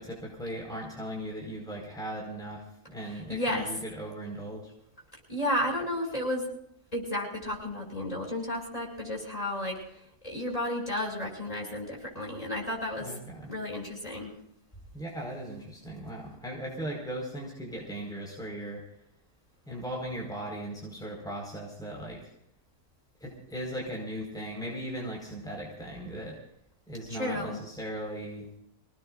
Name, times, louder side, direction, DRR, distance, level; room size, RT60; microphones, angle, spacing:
voice 1, 0.0-4.7 13.0-13.5 14.9-18.8 19.7-22.3 23.2-26.4 26.9-28.5, right 1 dB, ahead, -2 dB, 4.7 m, -38 dB
voice 2, 3.0-3.7 5.3-6.5 6.9-13.2 13.5-14.3 27.1-27.6, left 1 dB, 20° left, -1 dB, 6.9 m, -33 dB
26.5 x 19.0 x 2.6 m, 0.75 s
omnidirectional pair, 1.8 m